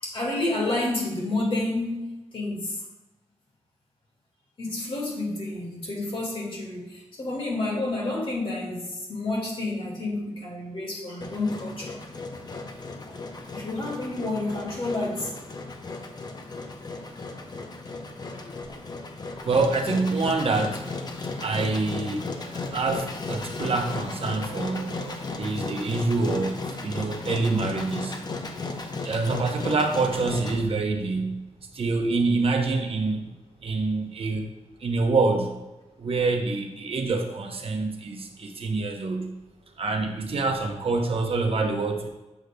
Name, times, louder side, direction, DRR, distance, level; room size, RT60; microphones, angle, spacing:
voice 1, 0.0-2.1 2.3-2.8 4.6-12.0 13.1-13.2 13.5-15.3, left 2 dB, 50° left, -2 dB, 2.0 m, -29 dB
Engine, 11.2-30.6, left 3 dB, 35° left, 0.6 m, -35 dB
voice 2, 19.3-20.8 21.4-28.2 29.0-31.4 31.7-33.2 33.6-34.5 34.8-35.5 36.0-39.3 39.8-42.1, right 3 dB, 55° right, 4 dB, 0.8 m, -26 dB
8.0 x 6.4 x 2.2 m, 1.0 s
wide cardioid pair, 125°, 12 cm